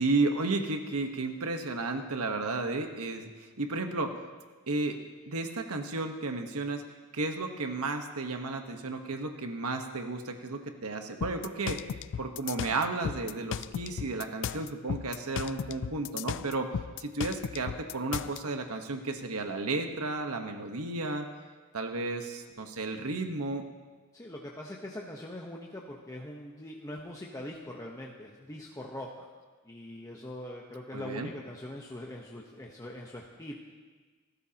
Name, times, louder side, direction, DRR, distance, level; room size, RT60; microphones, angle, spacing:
voice 1, 0.0-4.1 4.7-5.0 5.3-6.8 7.1-16.7 17.0-21.3 21.7-23.6 30.9-31.3, right 3 dB, 80° right, 5 dB, 1.3 m, -33 dB
sound 1, 11.2-18.4, left 7 dB, 55° left, 0.3 m, -35 dB
voice 2, 24.1-29.3 29.6-33.5, left 1 dB, 15° left, -2 dB, 1.1 m, -42 dB
29.0 x 13.5 x 2.9 m, 1.4 s
head